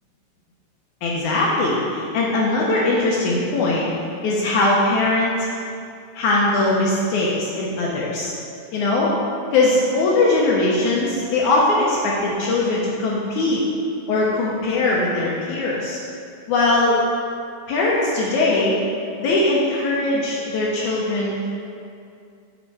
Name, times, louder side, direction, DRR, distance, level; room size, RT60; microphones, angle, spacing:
voice 1, 1.0-3.9 4.2-5.6 6.1-8.3 8.7-9.1 9.5-13.6 14.1-16.0 16.5-17.0 17.7-18.8 19.2-21.4, left 2 dB, 80° left, -4 dB, 1.7 m, -20 dB
7.9 x 5.5 x 4.7 m, 2.4 s
omnidirectional pair, 4.7 m